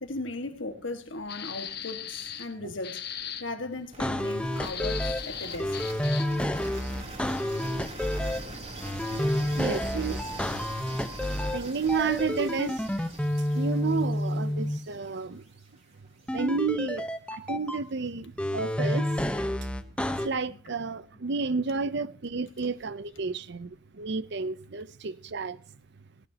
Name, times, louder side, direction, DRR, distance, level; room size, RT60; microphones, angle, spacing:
voice 1, 0.0-3.0 3.4-5.8 18.2-18.3 20.5-20.6 22.6-22.7, left 2 dB, 75° left, 1.9 m, -37 dB
sound 1, 1.3-2.5 2.8-3.4 4.5-6.4, left 9 dB, 55° left, 1.3 m, -38 dB
sound 2, 3.9-15.8, right 2 dB, 35° right, 3.2 m, -43 dB
sound 3, 4.0-5.2 5.6-8.4 8.8-11.6 11.9-14.8 16.3-17.8 18.4-20.3, left 1 dB, 5° left, 1.0 m, -29 dB
voice 2, 9.6-10.3 10.8-12.9 13.5-15.4 16.3-19.1 20.2-25.6, right 4 dB, 60° right, 0.7 m, -31 dB
19.0 x 17.5 x 2.9 m
head